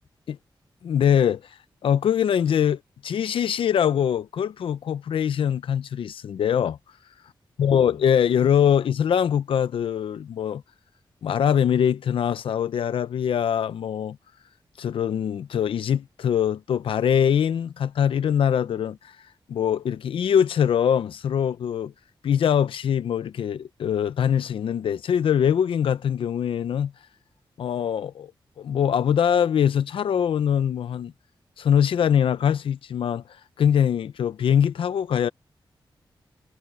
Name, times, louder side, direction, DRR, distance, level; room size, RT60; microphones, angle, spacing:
voice 1, 0.8-6.8 7.6-10.6 11.2-14.2 14.8-21.9 22.2-26.9 27.6-28.3 28.6-31.1 31.6-35.3, left 8 dB, 90° left, 0.6 m, -23 dB
wide cardioid pair, 110°, 9 cm